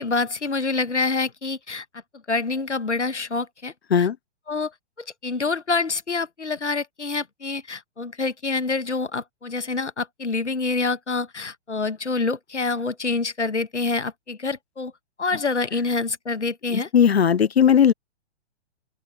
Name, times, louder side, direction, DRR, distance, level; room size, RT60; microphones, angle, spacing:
voice 1, 0.0-1.8 2.3-4.1 4.5-4.7 5.0-14.9 15.2-16.9, left 3 dB, 80° left, 1.6 m, -26 dB
voice 2, 16.7-17.9, left 8 dB, 60° left, 1.1 m, -17 dB
open air
figure-of-eight pair, 120°, 35 cm